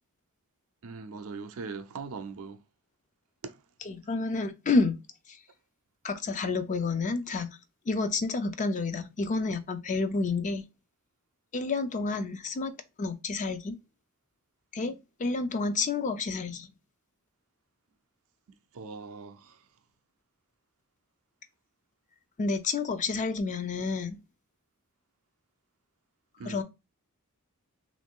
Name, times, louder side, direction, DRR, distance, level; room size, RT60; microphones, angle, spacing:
voice 1, 0.8-2.6 3.4-3.6 18.7-19.6 26.4-26.6, right 4 dB, 65° right, 0.4 m, -40 dB
voice 2, 3.9-5.0 6.0-7.5 7.9-10.6 11.5-12.7 13.0-13.8 14.7-16.7 22.4-24.2 26.5-26.6, left 3 dB, 35° left, 0.4 m, -29 dB
3.1 x 2.5 x 3.5 m
head